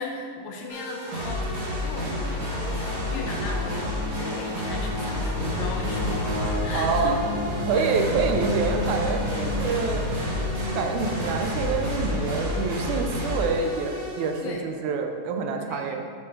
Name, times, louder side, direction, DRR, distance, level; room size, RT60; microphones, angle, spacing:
voice 1, 0.0-2.7 3.1-6.3 6.6-7.2 7.7-8.0 14.4-14.6 15.6-16.0, left 3 dB, 85° left, 1 dB, 2.1 m, -36 dB
sound 1, 0.7-14.4, left 1 dB, 45° right, 1.9 m, -30 dB
sound 2, 2.2-12.4, left 2 dB, 65° left, 2.1 m, -35 dB
sound 3, 5.1-12.1, left 3 dB, 50° left, 2.6 m, -35 dB
voice 2, 6.7-7.2 7.6-10.1 10.7-16.0, right 5 dB, 85° right, 4 dB, 2.1 m, -27 dB
9.2 x 5.1 x 3.8 m, 2.2 s
omnidirectional pair, 3.3 m